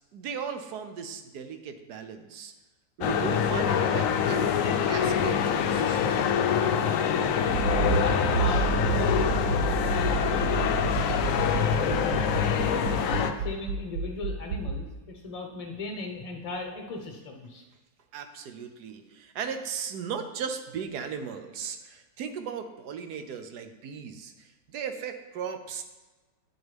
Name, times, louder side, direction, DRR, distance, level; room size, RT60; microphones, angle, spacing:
voice 1, 0.1-2.5 3.0-6.2 18.1-25.8, right 7 dB, 70° right, 8 dB, 1.2 m, -37 dB
sound 1, 3.0-13.3, left 7 dB, 70° left, 0.8 m, -25 dB
Accelerating revving vroom, 7.5-14.8, right 4 dB, 85° right, 1.3 m, -29 dB
voice 2, 7.9-11.0 11.5-17.6, left 3 dB, 25° left, 2 dB, 0.9 m, -37 dB
9.7 x 7.6 x 3.4 m, 1.2 s
omnidirectional pair, 1.9 m